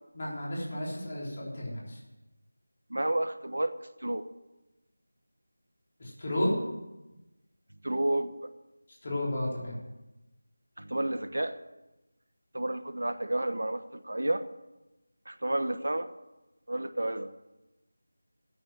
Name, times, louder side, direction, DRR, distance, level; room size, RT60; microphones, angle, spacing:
voice 1, 0.1-2.0 6.0-6.6 9.0-9.7, left 1 dB, 25° left, -4 dB, 3.4 m, -32 dB
voice 2, 2.9-3.7 4.0-4.2 7.8-8.5 10.8-11.6 12.5-14.4 15.3-16.1 16.7-17.3, right 1 dB, 80° right, 11 dB, 1.1 m, -30 dB
9.6 x 8.4 x 8.9 m, 1.0 s
figure-of-eight pair, 180°, 0 cm